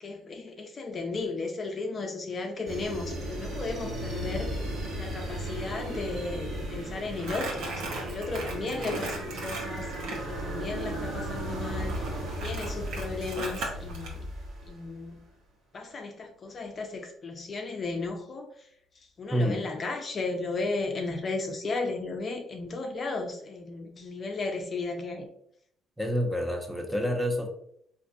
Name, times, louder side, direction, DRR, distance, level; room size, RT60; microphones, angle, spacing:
voice 1, 0.0-4.6 5.0-14.3 14.6-15.2 15.7-18.7 19.2-25.3, left 3 dB, 40° left, 0.5 m, -35 dB
sound 1, 2.7-15.0, right 1 dB, 60° right, 1.3 m, -35 dB
Crumpling crinkling, 7.2-10.2 11.9-14.1, right 2 dB, 85° right, 0.9 m, -37 dB
voice 2, 19.3-19.6 26.0-27.5, equal, ahead, 0.6 m, -28 dB
3.9 x 2.6 x 2.6 m
cardioid pair, 105°, 0 cm